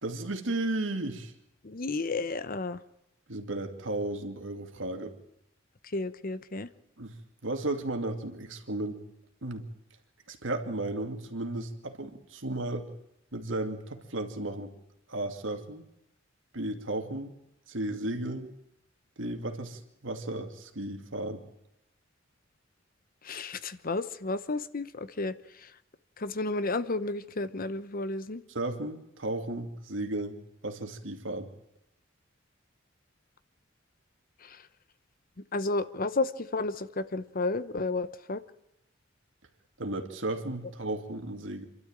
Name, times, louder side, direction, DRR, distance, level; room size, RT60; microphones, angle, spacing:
voice 1, 0.0-1.3 3.3-5.1 7.0-7.1 7.4-9.0 9.4-9.6 10.3-12.9 13.3-14.7 15.1-15.8 16.5-17.3 17.7-18.5 19.2-21.4 28.5-30.4 30.6-31.5 39.8-41.7, right 2 dB, 75° right, 2.4 m, -34 dB
voice 2, 1.6-2.8 5.9-6.7 23.2-25.3 26.2-28.4 34.4-34.6 35.5-38.4, left 3 dB, 45° left, 0.9 m, -32 dB
26.5 x 12.5 x 8.9 m
head